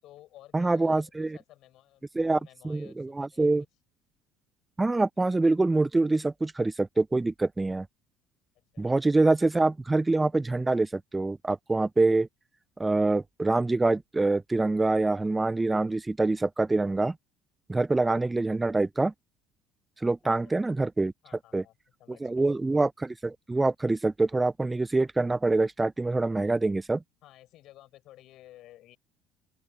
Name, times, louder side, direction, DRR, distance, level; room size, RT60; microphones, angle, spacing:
voice 1, 0.0-3.7 8.6-9.1 20.4-20.5 21.2-21.7 22.0-22.5 27.2-29.0, left 14 dB, 60° left, 7.1 m, -54 dB
voice 2, 0.5-1.4 2.1-3.6 4.8-7.9 8.8-12.3 12.8-17.1 17.7-19.1 20.0-21.1 21.5-21.6 22.1-27.0, right 2 dB, 15° right, 0.8 m, -25 dB
open air
hypercardioid pair, 65°, 0 cm